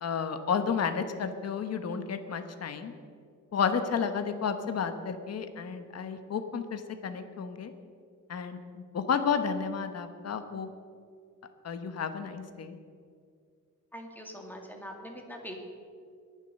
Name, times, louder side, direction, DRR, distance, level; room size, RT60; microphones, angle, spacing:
voice 1, 0.0-2.9 3.5-7.7 8.3-10.7 11.6-12.8, left 6 dB, 55° left, 8 dB, 1.2 m, -32 dB
voice 2, 13.9-15.6, equal, 5° left, 2 dB, 2.2 m, -43 dB
22.0 x 7.5 x 6.6 m, 2.3 s
wide cardioid pair, 135°, 31 cm